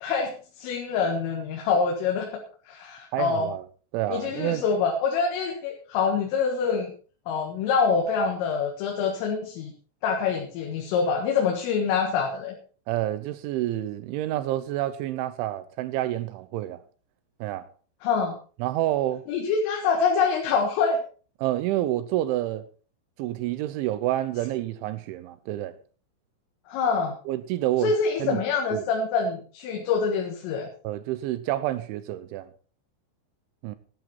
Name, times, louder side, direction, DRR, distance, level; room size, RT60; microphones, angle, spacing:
voice 1, 0.0-2.4 2.7-3.5 4.1-6.9 7.3-9.7 10.0-12.6 18.0-18.3 19.3-21.0 26.7-27.1 27.8-30.7, left 5 dB, 85° left, 4.3 m, -25 dB
voice 2, 3.1-3.6 3.9-4.6 12.9-16.8 17.4-17.7 18.6-19.2 21.4-22.6 23.2-25.7 27.3-27.9 28.2-28.4 28.7-28.8 30.8-32.5 33.6-33.8, right 14 dB, 80° right, 3.0 m, -28 dB
15.5 x 11.0 x 4.3 m
omnidirectional pair, 5.7 m